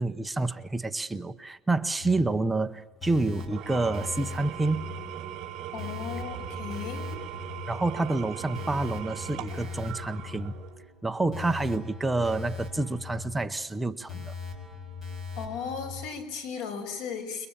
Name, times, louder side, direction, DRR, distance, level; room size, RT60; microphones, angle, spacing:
voice 1, 0.0-4.9 7.7-10.5 11.0-14.3, right 2 dB, 5° right, 8 dB, 0.9 m, -28 dB
sound 1, 2.0-16.1, left 5 dB, 20° left, 6.2 m, -40 dB
Engine / Tools, 3.4-10.9, right 11 dB, 40° right, 4.6 m, -40 dB
voice 2, 5.7-7.1 15.3-17.5, left 6 dB, 85° left, 7 dB, 6.3 m, -36 dB
29.5 x 23.0 x 8.9 m, 1.0 s
cardioid pair, 170°, 0 cm